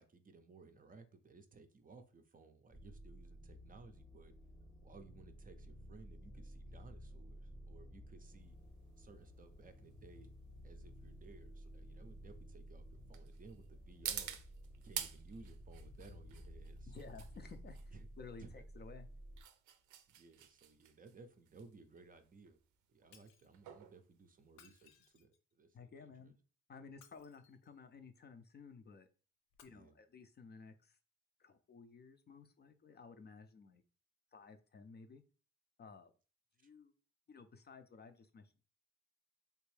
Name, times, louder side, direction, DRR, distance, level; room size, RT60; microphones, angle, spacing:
voice 1, 0.0-4.3 4.8-8.6 9.0-10.3 10.6-12.8 13.1-14.4 14.8-17.1 17.9-18.1 18.4-18.5 20.1-22.6 22.9-26.3 29.7-30.0 36.6-36.7, right 4 dB, 30° right, 7 dB, 0.4 m, -59 dB
sound 1, 2.7-19.4, equal, 10° right, 0.8 m, -54 dB
sound 2, 8.4-25.1, right 10 dB, 80° right, 0.5 m, -50 dB
voice 2, 16.9-19.1 25.7-26.4 26.7-29.1 29.6-31.0 31.4-33.8 34.3-35.2 35.8-36.1 36.6-36.9 37.3-38.6, left 5 dB, 35° left, 8 dB, 0.4 m, -55 dB
Shatter, 23.1-23.5 24.5-25.5 26.9-27.8 29.5-29.6, left 8 dB, 90° left, 0.6 m, -65 dB
3.4 x 2.6 x 3.2 m, 0.36 s
cardioid pair, 90°, 30 cm